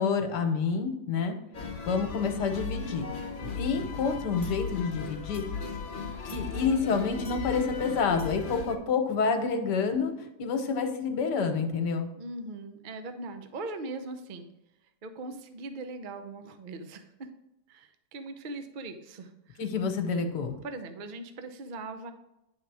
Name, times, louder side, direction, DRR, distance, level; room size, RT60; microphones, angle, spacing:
voice 1, 0.0-1.4 1.9-3.1 3.4-5.4 6.2-10.1 10.4-12.1 19.6-20.6, left 5 dB, 85° left, 6 dB, 1.5 m, -28 dB
sound 1, 1.5-8.8, left 5 dB, 40° left, 0.8 m, -36 dB
voice 2, 12.2-14.5 15.0-17.3 17.7-19.6 20.6-22.1, right 2 dB, 55° right, 8 dB, 0.5 m, -40 dB
9.4 x 3.7 x 4.7 m, 0.91 s
omnidirectional pair, 1.8 m